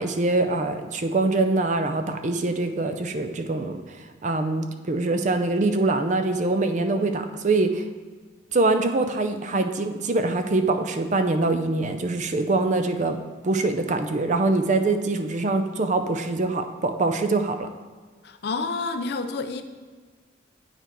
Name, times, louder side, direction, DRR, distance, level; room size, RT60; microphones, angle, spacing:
voice 1, 0.0-3.8 4.2-7.8 8.5-13.2 13.4-17.7, right 2 dB, 40° right, 8 dB, 0.5 m, -24 dB
voice 2, 18.2-19.6, left 3 dB, 55° left, 8 dB, 0.5 m, -29 dB
9.1 x 4.4 x 4.5 m, 1.4 s
head